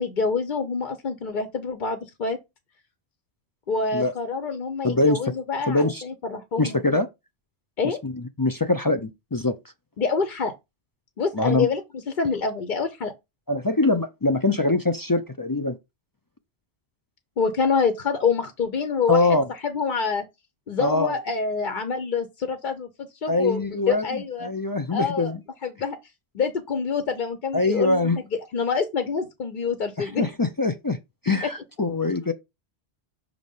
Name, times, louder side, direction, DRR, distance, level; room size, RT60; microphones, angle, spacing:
voice 1, 0.0-2.4 3.7-6.8 7.8-8.0 10.0-10.5 11.2-11.8 12.1-13.1 17.4-19.2 19.6-20.2 20.7-22.9 23.2-24.5 24.9-25.3 25.6-26.0 26.3-28.2 28.5-30.3 31.4-31.5, left 5 dB, 50° left, 0.8 m, -26 dB
voice 2, 4.8-5.3 5.7-6.0 6.6-7.1 7.8-9.5 11.3-11.7 13.5-15.8 19.1-19.4 20.8-21.1 23.3-25.4 27.5-28.2 30.0-31.0 31.2-32.3, left 2 dB, 30° left, 0.4 m, -23 dB
6.4 x 3.0 x 5.3 m
omnidirectional pair, 1.1 m